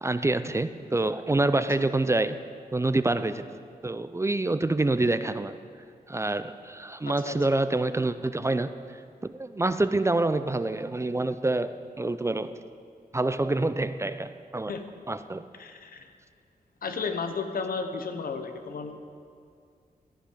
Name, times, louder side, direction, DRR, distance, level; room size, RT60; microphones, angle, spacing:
voice 1, 0.0-2.4 2.7-3.5 3.8-5.5 6.1-8.7 9.2-12.5 13.1-14.7 15.1-15.4, right 2 dB, 20° right, 12 dB, 0.4 m, -26 dB
voice 2, 7.0-7.6 14.7-14.8 15.6-16.1 16.8-19.0, left 5 dB, 70° left, 7 dB, 1.0 m, -33 dB
13.5 x 10.0 x 5.1 m, 2.3 s
wide cardioid pair, 95°, 16 cm